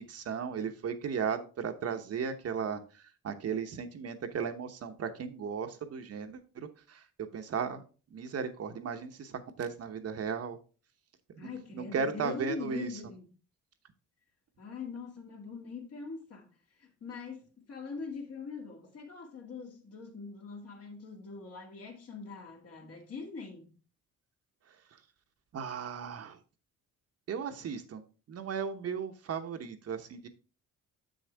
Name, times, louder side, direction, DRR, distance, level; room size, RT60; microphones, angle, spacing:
voice 1, 0.0-7.0 7.3-7.8 8.1-10.6 11.4-12.9 25.5-26.4 27.3-28.0 28.3-30.3, right 6 dB, 55° right, 1.0 m, -36 dB
voice 2, 11.4-13.3 14.6-16.5 16.8-23.8, left 4 dB, 55° left, 2.1 m, -42 dB
7.1 x 6.4 x 3.4 m
cardioid pair, 90°, 30 cm